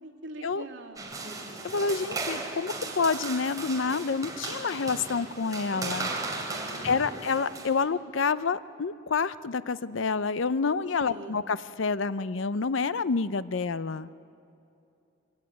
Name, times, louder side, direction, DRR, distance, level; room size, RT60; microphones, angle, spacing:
voice 1, 0.0-1.2 6.7-7.2 11.0-11.4, right 2 dB, 70° right, -2 dB, 2.8 m, -44 dB
sound 1, 1.0-7.7, right 3 dB, 20° right, 3.0 m, -36 dB
voice 2, 1.6-6.1 6.8-14.1, left 4 dB, 75° left, 15 dB, 0.6 m, -28 dB
23.5 x 17.0 x 9.0 m, 2.7 s
head